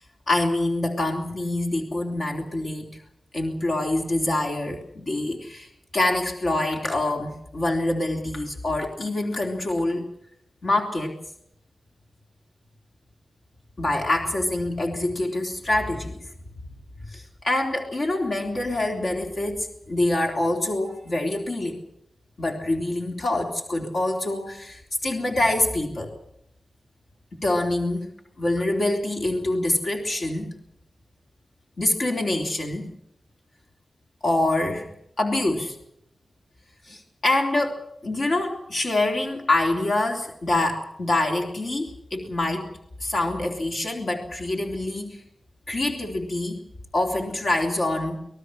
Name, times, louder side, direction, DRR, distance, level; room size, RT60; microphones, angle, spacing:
voice 1, 0.3-2.9 3.3-10.1 10.6-11.1 13.8-16.2 17.0-21.8 22.4-26.1 27.3-28.1 28.4-30.5 31.8-32.9 34.2-34.9 35.2-35.8 36.9-42.7 43.0-45.2 45.7-46.6 46.9-48.2, left 2 dB, 50° left, 1 dB, 3.4 m, -25 dB
27.0 x 19.0 x 6.4 m, 0.74 s
wide cardioid pair, 140°, 0 cm